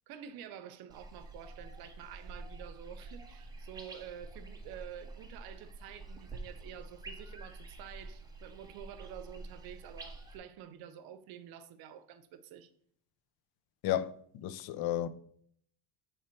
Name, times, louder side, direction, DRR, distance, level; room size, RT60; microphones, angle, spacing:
voice 1, 0.1-12.7, right 9 dB, 60° right, 0.7 m, -49 dB
sound 1, 0.9-10.4, right 2 dB, 10° right, 0.5 m, -48 dB
voice 2, 13.8-15.1, left 12 dB, 65° left, 0.5 m, -33 dB
7.4 x 3.3 x 4.4 m
cardioid pair, 165°, 41 cm